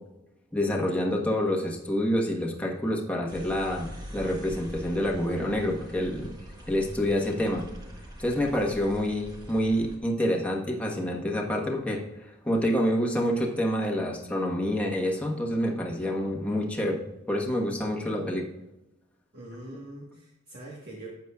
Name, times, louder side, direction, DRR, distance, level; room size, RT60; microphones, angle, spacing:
voice 1, 0.5-6.3 6.7-7.6 8.2-12.0 12.3-17.0 17.3-18.5, equal, 5° left, -1 dB, 1.2 m, -27 dB
sound 1, 3.3-10.0, equal, 20° right, 1.5 m, -43 dB
voice 2, 19.3-21.1, right 1 dB, 55° right, -3 dB, 1.5 m, -43 dB
12.0 x 8.1 x 2.4 m, 0.98 s
head